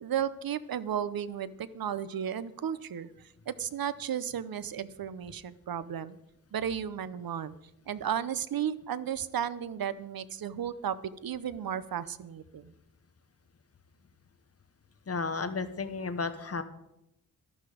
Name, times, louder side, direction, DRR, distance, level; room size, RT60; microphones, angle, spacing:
voice 1, 0.0-3.1 3.5-6.2 6.5-7.5 7.9-11.0 11.2-12.7, right 9 dB, 85° right, 15 dB, 0.7 m, -34 dB
voice 2, 15.1-16.6, left 4 dB, 45° left, 9 dB, 1.0 m, -33 dB
12.5 x 12.0 x 5.0 m, 0.85 s
wide cardioid pair, 150°, 34 cm